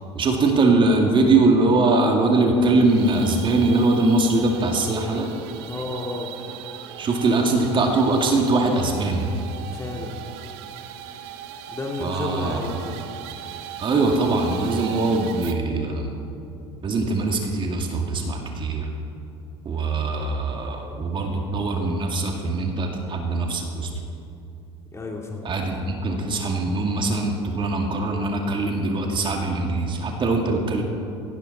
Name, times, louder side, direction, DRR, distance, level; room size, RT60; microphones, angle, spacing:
voice 1, 0.1-5.3 7.0-9.3 12.0-12.6 13.8-16.2 16.8-18.9 19.6-23.9 25.4-30.8, right 2 dB, 35° right, 2 dB, 2.3 m, -22 dB
sound 1, 2.6-15.5, right 9 dB, 65° right, 1.1 m, -39 dB
voice 2, 5.7-6.3 8.5-8.9 9.7-10.1 11.7-13.0 24.9-25.5, left 2 dB, 20° left, 0 dB, 3.2 m, -32 dB
18.0 x 17.0 x 4.2 m, 2.6 s
hypercardioid pair, 70°, 15 cm